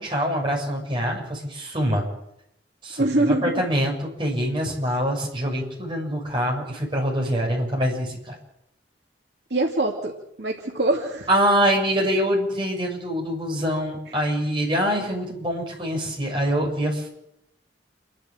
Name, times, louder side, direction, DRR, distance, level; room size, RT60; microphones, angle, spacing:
voice 1, 0.0-2.1 2.8-8.4 11.3-17.1, equal, 25° right, -2 dB, 7.0 m, -24 dB
voice 2, 3.0-3.7 9.5-10.1 10.4-11.3, right 2 dB, 65° right, 0 dB, 2.6 m, -23 dB
29.0 x 12.0 x 7.8 m, 0.80 s
head